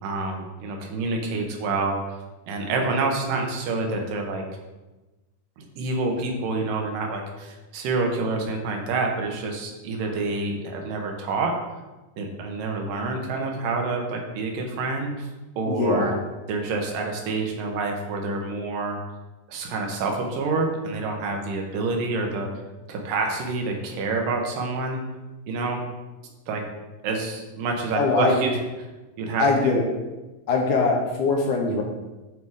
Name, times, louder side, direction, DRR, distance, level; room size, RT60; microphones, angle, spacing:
voice 1, 0.0-2.2 2.5-4.4 5.6-11.5 12.2-15.3 15.6-16.1 16.5-19.0 19.5-22.5 22.9-25.0 25.5-25.8 26.5-26.6 27.0-28.6 29.2-29.7, right 3 dB, 80° right, 2 dB, 2.6 m, -27 dB
voice 2, 15.7-16.2 27.9-28.4 29.4-29.8 30.5-31.8, left 3 dB, 75° left, 1 dB, 2.2 m, -22 dB
8.9 x 3.6 x 4.7 m, 1.1 s
omnidirectional pair, 3.9 m